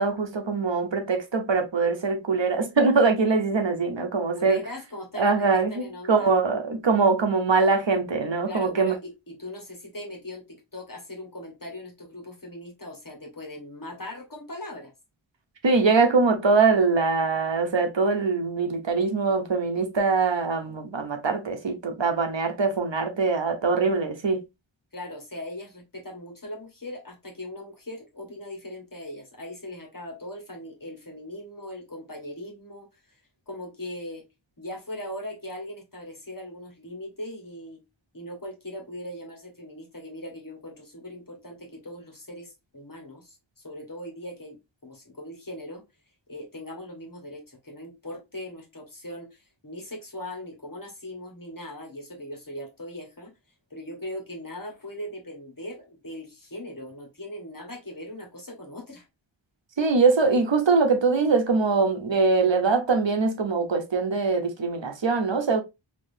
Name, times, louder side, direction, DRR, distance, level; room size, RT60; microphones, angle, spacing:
voice 1, 0.0-4.6 5.2-8.9 15.6-24.4 59.8-65.6, right 4 dB, 65° right, 0.8 m, -23 dB
voice 2, 4.4-6.3 8.5-10.4 10.7-14.9 24.9-32.9 33.5-34.2 34.6-37.8 38.1-44.6 44.8-45.8 46.3-53.3 53.7-59.1, left 1 dB, 45° left, 1.4 m, -39 dB
3.7 x 2.9 x 2.6 m
wide cardioid pair, 45°, 47 cm